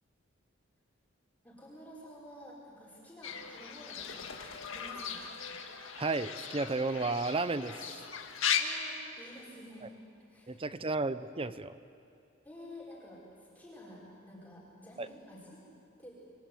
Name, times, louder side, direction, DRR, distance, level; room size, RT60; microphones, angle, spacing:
voice 1, 1.4-4.3 4.7-5.2 8.6-9.9 10.3-10.6 12.4-15.6 16.0-16.1, left 1 dB, 10° left, -6 dB, 5.2 m, -50 dB
Fowl / Bird, 3.2-8.6, left 8 dB, 70° left, 1.9 m, -37 dB
voice 2, 6.0-8.0 9.8-9.9 10.5-11.8 15.0-15.1, right 3 dB, 25° right, 13 dB, 0.7 m, -33 dB
29.0 x 22.0 x 7.8 m, 2.5 s
head